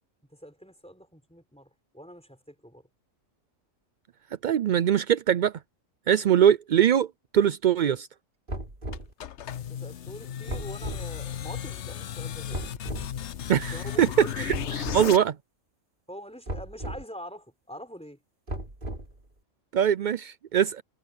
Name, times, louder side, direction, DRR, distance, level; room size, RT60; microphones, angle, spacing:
voice 1, 0.3-2.9 9.6-12.6 13.7-14.9 16.1-18.2, equal, 5° left, 4.5 m, -44 dB
voice 2, 4.4-5.5 6.1-7.1 7.3-8.1 13.5-15.4 19.7-20.8, right 9 dB, 70° right, 0.4 m, -22 dB
sound 1, 8.5-9.1 10.5-11.1 12.5-13.1 14.5-15.1 16.5-17.0 18.5-19.2, right 1 dB, 40° right, 3.5 m, -35 dB
sound 2, 8.9-15.2, left 9 dB, 65° left, 1.0 m, -35 dB
omnidirectional pair, 1.4 m